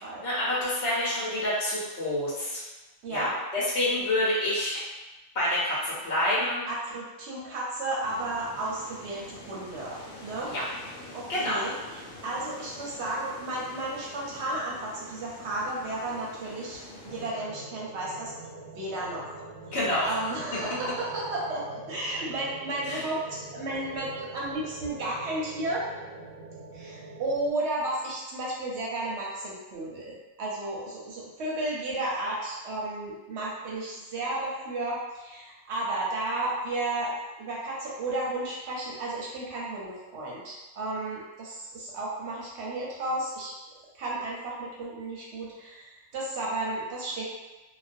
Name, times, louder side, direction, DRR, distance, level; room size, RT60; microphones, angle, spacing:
voice 1, 0.2-2.6 3.1-4.8 5.3-6.6 10.5-10.6 11.3-11.6 19.7-20.1 22.9-23.0, left 1 dB, 60° left, -8 dB, 0.9 m, -27 dB
voice 2, 3.0-3.3 6.7-10.5 11.1-11.7 12.2-18.3 18.7-19.3 20.0-25.8 26.7-37.1 37.4-43.5 43.9-47.2, right 2 dB, 60° right, -4 dB, 0.8 m, -33 dB
sound 1, 8.0-17.3, left 1 dB, 85° left, 1.1 m, -46 dB
sound 2, 17.0-27.5, right 2 dB, 90° right, 1.0 m, -44 dB
2.4 x 2.2 x 2.5 m, 1.1 s
omnidirectional pair, 1.5 m